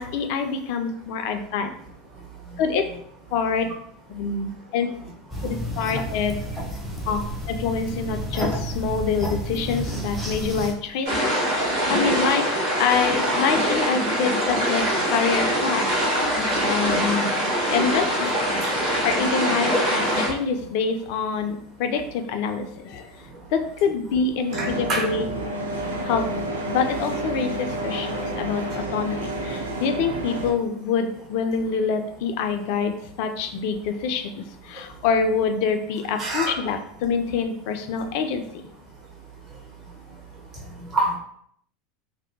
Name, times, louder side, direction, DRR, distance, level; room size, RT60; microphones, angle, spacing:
voice 1, 0.0-1.7 2.6-2.9 3.3-3.7 4.1-4.9 5.4-6.4 7.1-7.2 7.5-12.5 12.8-15.8 16.3-17.3 17.7-18.4 19.0-23.1 23.5-25.3 26.0-26.3 26.7-38.4, left 5 dB, 55° left, 7 dB, 0.3 m, -26 dB
sound 1, 5.3-10.7, equal, 10° right, 0.7 m, -30 dB
sound 2, 11.0-20.3, equal, 60° right, 1.2 m, -23 dB
voice 2, 24.5-25.0 36.2-36.5 40.9-41.2, right 2 dB, 40° right, -3 dB, 1.0 m, -25 dB
sound 3, 24.5-30.5, right 1 dB, 85° right, 0.4 m, -30 dB
2.5 x 2.1 x 2.7 m, 0.68 s
figure-of-eight pair, 80°, 0 cm